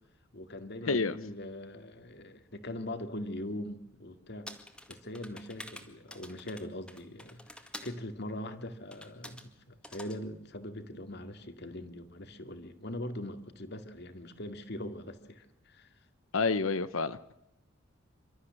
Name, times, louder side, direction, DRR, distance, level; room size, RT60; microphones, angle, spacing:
voice 1, 0.3-4.5 4.9-15.9, left 1 dB, 55° left, 8 dB, 2.3 m, -41 dB
sound 1, 4.5-8.0 8.9-9.5 9.8-10.2, left 1 dB, 5° left, 2.0 m, -48 dB
voice 2, 16.3-17.4, left 4 dB, 90° left, 13 dB, 0.9 m, -29 dB
29.0 x 13.5 x 7.6 m, 0.89 s
head